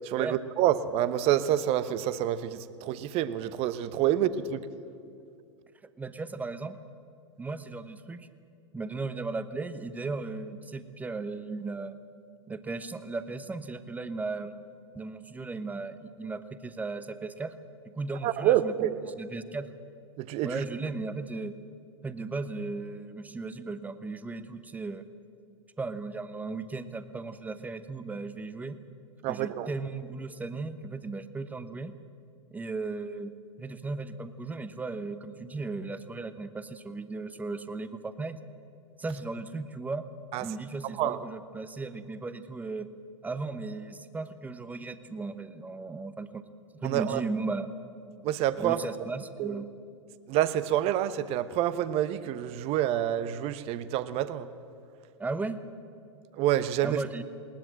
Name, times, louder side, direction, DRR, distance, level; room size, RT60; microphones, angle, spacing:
voice 1, 0.0-4.6 18.2-18.9 20.2-20.6 29.2-29.7 40.3-40.4 41.0-41.2 46.8-47.2 48.2-48.8 49.4-49.6 50.3-54.5 56.4-57.0, right 12 dB, 40° right, 14 dB, 1.1 m, -27 dB
voice 2, 6.0-6.8 7.4-8.3 8.7-12.0 12.5-14.6 14.9-17.5 17.9-19.7 20.4-21.5 22.0-25.0 25.8-28.8 29.3-31.9 32.5-38.4 39.0-40.0 40.4-42.9 43.2-46.4 46.8-47.7 48.6-49.7 55.2-55.6 56.8-57.2, right 3 dB, 10° right, 12 dB, 1.0 m, -36 dB
20.5 x 19.5 x 7.7 m, 2.5 s
hypercardioid pair, 100°, 16 cm